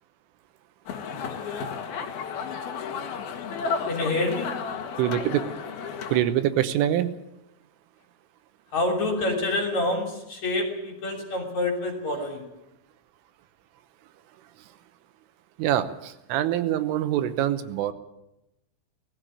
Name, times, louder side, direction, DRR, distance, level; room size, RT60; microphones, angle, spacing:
sound 1, 0.9-6.2, left 6 dB, 60° left, 3.0 m, -33 dB
voice 1, 3.9-4.6 8.7-12.4, left 2 dB, 40° left, 2 dB, 3.7 m, -27 dB
voice 2, 5.0-5.4 6.1-7.1 15.6-17.9, right 12 dB, 80° right, 10 dB, 3.5 m, -24 dB
19.5 x 15.5 x 9.2 m, 0.90 s
omnidirectional pair, 5.8 m